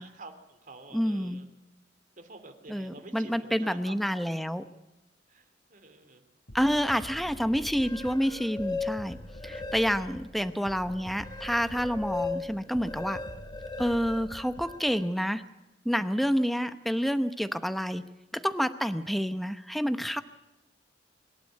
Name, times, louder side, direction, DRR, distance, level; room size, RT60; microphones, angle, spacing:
voice 1, 0.0-1.5 2.2-4.4 5.3-6.2 9.5-9.8, right 3 dB, 50° right, 8 dB, 2.7 m, -49 dB
voice 2, 0.9-1.4 2.7-4.6 6.5-9.2 9.4-13.2 13.8-15.4 15.8-18.1 18.3-20.2, equal, ahead, 11 dB, 0.8 m, -28 dB
sound 1, 6.5-14.8, equal, 70° left, 2.8 m, -46 dB
sound 2, 7.6-10.3 10.7-15.1, left 4 dB, 25° left, 1.8 m, -38 dB
25.0 x 12.0 x 9.6 m, 0.97 s
head